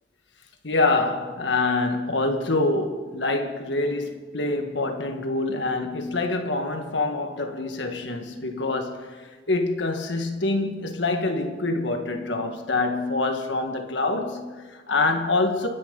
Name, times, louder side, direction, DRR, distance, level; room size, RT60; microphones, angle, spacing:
voice 1, 0.6-15.7, left 2 dB, 75° left, 1.6 m, -26 dB
29.0 x 10.0 x 4.0 m
head